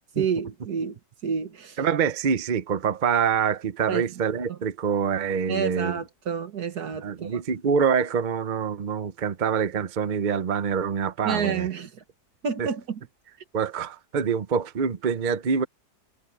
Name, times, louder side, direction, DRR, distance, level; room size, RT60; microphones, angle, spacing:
voice 1, 0.2-1.8 3.9-4.1 4.5-4.6 5.5-7.4 11.2-12.0 12.4-13.0, right 6 dB, 65° right, 2.0 m, -29 dB
voice 2, 1.8-6.0 7.0-11.7 12.6-12.7 13.5-15.6, right 6 dB, 45° right, 0.6 m, -25 dB
omnidirectional pair, 1.8 m